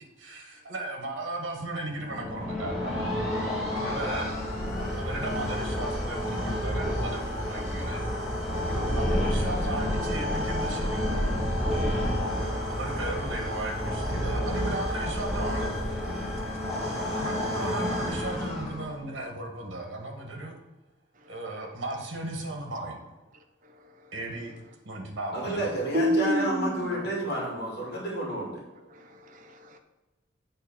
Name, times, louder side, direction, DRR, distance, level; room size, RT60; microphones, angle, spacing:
voice 1, 0.2-3.1 3.7-4.4 4.9-11.8 12.7-15.8 17.0-20.6 21.3-23.0 24.1-24.5 24.8-25.7 26.9-27.0 28.9-29.1, right 2 dB, 80° right, 2 dB, 1.5 m, -36 dB
sound 1, 2.0-19.0, left 1 dB, ahead, 2.4 m, -30 dB
voice 2, 25.3-28.6, right 1 dB, 55° left, -4 dB, 2.3 m, -30 dB
voice 3, 25.9-26.9 28.9-29.8, equal, 40° right, 4 dB, 0.8 m, -28 dB
7.7 x 4.2 x 5.5 m, 1.1 s
head